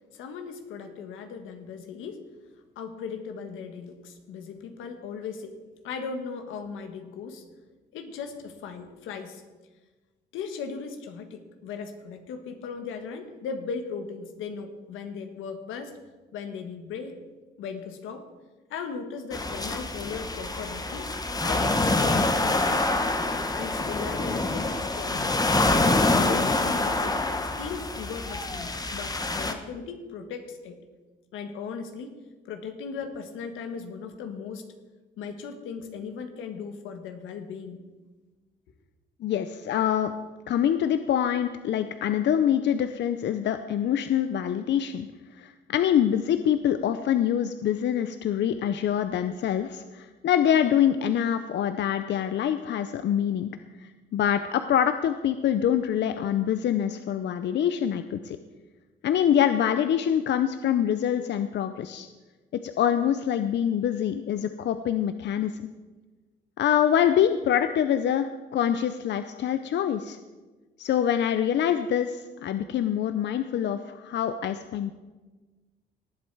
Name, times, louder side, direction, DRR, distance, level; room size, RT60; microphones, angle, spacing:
voice 1, 0.1-2.2 2.7-5.6 5.8-7.4 7.9-9.4 10.3-16.0 16.3-17.1 17.6-18.3 18.7-21.1 21.4-23.0 23.5-25.6 26.2-27.2 27.6-30.8 31.3-32.1 32.4-34.7 35.2-37.9, left 5 dB, 90° left, 6 dB, 1.4 m, -37 dB
sound 1, 19.3-29.5, left 2 dB, 20° left, 1.1 m, -26 dB
voice 2, 39.2-40.1 40.5-45.1 45.4-53.6 53.8-58.4 59.0-62.1 62.5-65.7 66.6-70.2 70.8-74.9, left 9 dB, 65° left, 10 dB, 0.6 m, -25 dB
18.5 x 7.5 x 4.7 m, 1.2 s
cardioid pair, 90°, 20 cm